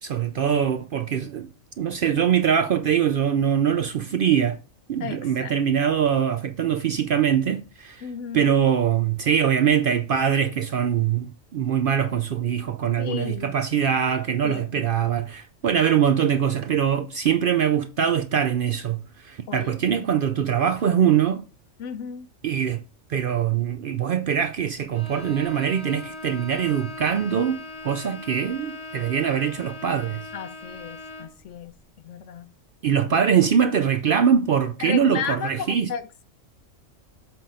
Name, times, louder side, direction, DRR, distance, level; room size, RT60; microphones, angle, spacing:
voice 1, 0.0-1.5 1.8-4.6 4.9-8.1 8.3-21.4 22.4-22.8 23.1-30.3 32.8-35.9, right 8 dB, 60° right, 0.6 m, -23 dB
voice 2, 5.0-5.6 8.0-8.5 13.0-13.6 14.4-14.8 19.5-19.8 21.8-22.3 30.3-31.7 32.0-32.5 34.8-36.2, left 8 dB, 70° left, 1.0 m, -34 dB
Bowed string instrument, 24.9-31.4, left 2 dB, 30° left, 1.8 m, -40 dB
7.7 x 3.5 x 5.5 m
omnidirectional pair, 1.3 m